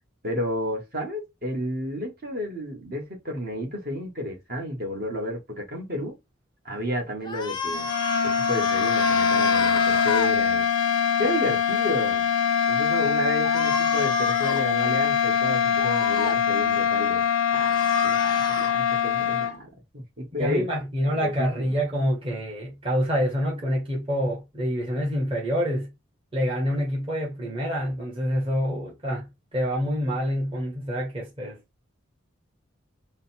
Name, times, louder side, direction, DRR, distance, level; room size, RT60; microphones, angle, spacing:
voice 1, 0.2-6.1 6.6-7.9 8.2-10.7 11.2-12.2 12.7-17.2 17.5-20.7 21.1-21.7, equal, 50° right, 1.4 m, -31 dB
sound 1, 7.2-10.3 13.4-14.6 15.8-16.4 17.5-18.7, left 4 dB, 20° left, 0.5 m, -31 dB
sound 2, 7.7-19.6, left 7 dB, 85° left, 0.6 m, -23 dB
voice 2, 20.4-25.9 26.3-31.6, equal, 25° right, 1.2 m, -27 dB
3.9 x 2.2 x 4.2 m
head